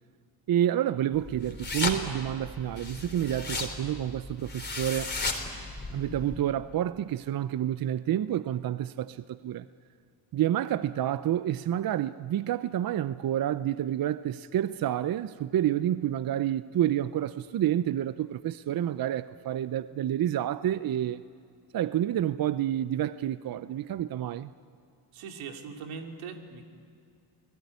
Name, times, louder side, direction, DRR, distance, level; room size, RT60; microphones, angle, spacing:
voice 1, 0.5-5.1 5.9-9.7 10.3-21.2 21.7-24.5, right 11 dB, 45° right, 0.6 m, -29 dB
sound 1, 1.1-6.4, left 3 dB, 20° left, 3.5 m, -35 dB
voice 2, 25.1-26.6, right 5 dB, 85° right, 2.8 m, -40 dB
29.5 x 19.0 x 9.5 m
cardioid pair, 95°, 48 cm